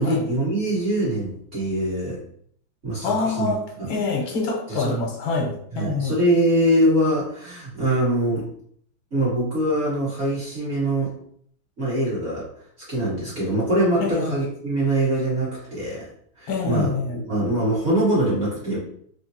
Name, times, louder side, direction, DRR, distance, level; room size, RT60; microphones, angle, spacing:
voice 1, 0.0-2.2 2.8-3.5 3.8-3.9 4.7-5.0 5.7-8.5 9.1-11.1 11.8-12.5 12.9-16.1 16.4-18.8, right 1 dB, 40° right, -8 dB, 1.3 m, -23 dB
voice 2, 3.0-3.6 3.9-6.2 14.0-14.3 16.5-17.2, left 3 dB, 75° left, 0 dB, 1.6 m, -25 dB
3.7 x 3.3 x 2.7 m, 0.65 s
omnidirectional pair, 2.2 m